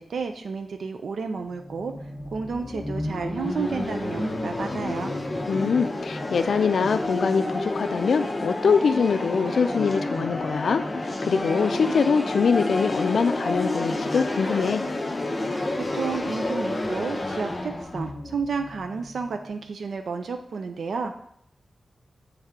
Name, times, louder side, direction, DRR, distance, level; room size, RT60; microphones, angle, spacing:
voice 1, 0.0-2.0 2.3-5.1 15.7-21.1, right 5 dB, 75° right, 6 dB, 0.4 m, -31 dB
sound 1, 1.5-19.4, left 2 dB, 20° left, 0.6 m, -30 dB
voice 2, 5.5-10.8 11.2-14.8, left 5 dB, 75° left, 9 dB, 0.3 m, -23 dB
8.0 x 3.3 x 3.6 m, 0.69 s
wide cardioid pair, 170°, 0 cm